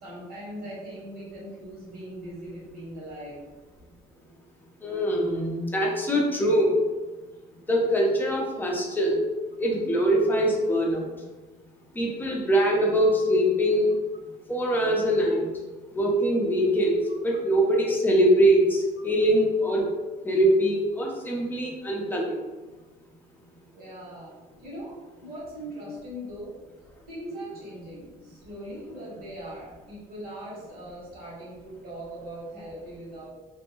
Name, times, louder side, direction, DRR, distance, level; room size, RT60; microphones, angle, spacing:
voice 1, 0.0-3.4 17.1-17.2 23.7-26.5 27.1-33.3, right 1 dB, 65° right, -6 dB, 1.4 m, -40 dB
voice 2, 4.8-6.8 7.7-9.2 9.6-11.1 12.0-14.0 14.5-15.5 15.9-19.9 20.2-22.4, equal, 10° left, -2 dB, 0.6 m, -23 dB
2.6 x 2.2 x 3.0 m, 1.2 s
cardioid pair, 110°, 17 cm